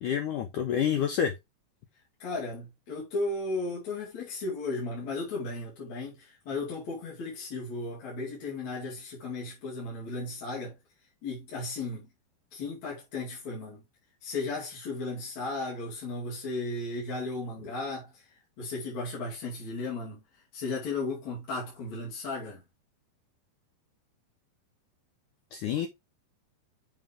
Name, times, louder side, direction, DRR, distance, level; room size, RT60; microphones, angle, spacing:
voice 1, 0.0-1.3 25.5-25.9, left 9 dB, 80° left, 1.9 m, -28 dB
voice 2, 2.2-10.8 11.2-12.1 12.5-13.8 14.2-18.2 18.6-20.2 20.5-22.6, left 3 dB, 45° left, 3.5 m, -35 dB
7.7 x 5.0 x 3.6 m
omnidirectional pair, 4.8 m